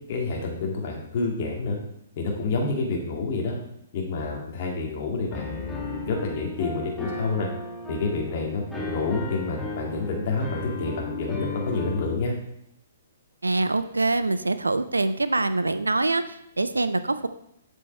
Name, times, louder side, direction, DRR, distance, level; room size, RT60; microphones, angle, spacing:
voice 1, 0.1-1.8 2.2-3.5 3.9-7.5 7.9-12.3, left 3 dB, 45° left, -1 dB, 2.2 m, -28 dB
Piano, 5.3-12.2, left 3 dB, 5° left, 2.1 m, -35 dB
voice 2, 13.4-17.3, right 2 dB, 85° right, 12 dB, 0.6 m, -24 dB
8.1 x 7.3 x 4.3 m, 0.75 s
figure-of-eight pair, 125°, 0 cm